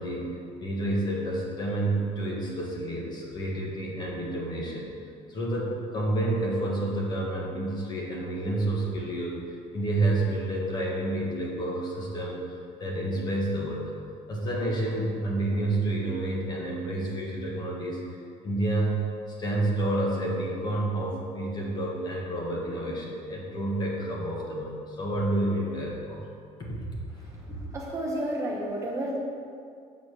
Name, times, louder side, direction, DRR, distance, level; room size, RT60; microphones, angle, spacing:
voice 1, 0.0-4.9 5.3-13.9 14.3-18.0 18.4-19.0 19.4-26.2 26.6-26.7, right 1 dB, 30° left, -3 dB, 1.4 m, -29 dB
voice 2, 27.2-29.2, right 1 dB, 20° right, -2 dB, 0.8 m, -32 dB
7.2 x 4.1 x 6.4 m, 2.3 s
cardioid pair, 165°, 14 cm